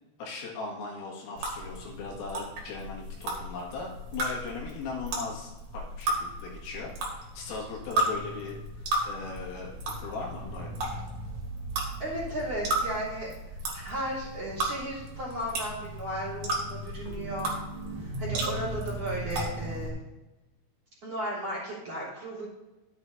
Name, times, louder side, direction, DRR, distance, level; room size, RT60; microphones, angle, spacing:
voice 1, 0.2-11.1, left 4 dB, 80° left, -3 dB, 4.5 m, -39 dB
sound 1, 1.4-19.9, right 1 dB, 50° right, 2.9 m, -34 dB
voice 2, 12.0-13.3 13.7-17.6 17.9-20.0 21.0-22.5, right 1 dB, 30° right, -8 dB, 4.0 m, -35 dB
13.0 x 9.0 x 2.7 m, 1.1 s
omnidirectional pair, 5.9 m